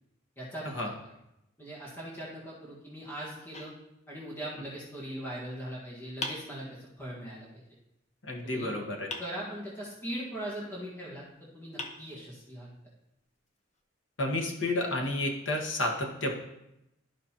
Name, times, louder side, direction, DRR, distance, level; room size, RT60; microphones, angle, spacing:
voice 1, 0.4-0.9 1.6-3.7 4.1-7.5 8.4-8.7 9.2-12.7, right 1 dB, 10° left, -7 dB, 1.6 m, -40 dB
sound 1, 3.5-4.5 6.2-7.2 9.1-10.0 11.2-11.3 11.8-12.7, left 2 dB, 35° left, 0.8 m, -43 dB
voice 2, 8.2-9.1 14.2-16.3, left 1 dB, 70° left, 0 dB, 1.4 m, -31 dB
13.0 x 5.2 x 2.9 m, 0.87 s
head